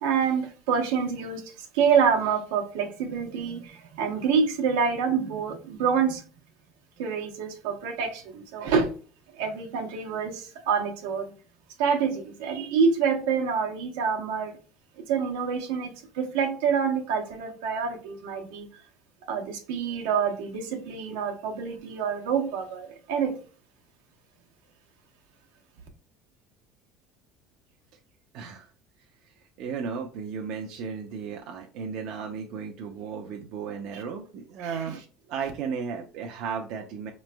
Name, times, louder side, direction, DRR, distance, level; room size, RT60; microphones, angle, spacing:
voice 1, 0.0-6.2 7.0-8.9 9.4-11.3 11.8-14.6 15.0-18.8 19.2-23.4 33.9-34.0 34.6-35.0, right 6 dB, 90° right, 1.0 m, -27 dB
voice 2, 28.3-28.7 29.2-29.3 29.6-35.0 35.3-37.1, right 6 dB, 65° right, 0.6 m, -34 dB
5.1 x 3.1 x 2.2 m
supercardioid pair, 110°, 0 cm